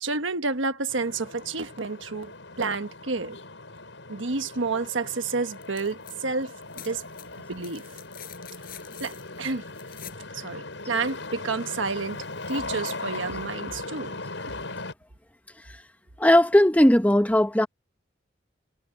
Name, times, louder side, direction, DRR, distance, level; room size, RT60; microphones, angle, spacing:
voice 1, 0.0-3.4 4.1-7.0 7.5-7.8 9.0-9.6 10.3-14.2, right 4 dB, 90° right, 1.3 m, -30 dB
sound 1, 0.9-14.9, left 3 dB, 75° left, 6.0 m, -39 dB
sound 2, 5.5-6.2 6.4-10.3 11.9-12.0, left 11 dB, 50° left, 5.6 m, -46 dB
voice 2, 16.2-17.7, left 1 dB, 10° left, 0.9 m, -18 dB
head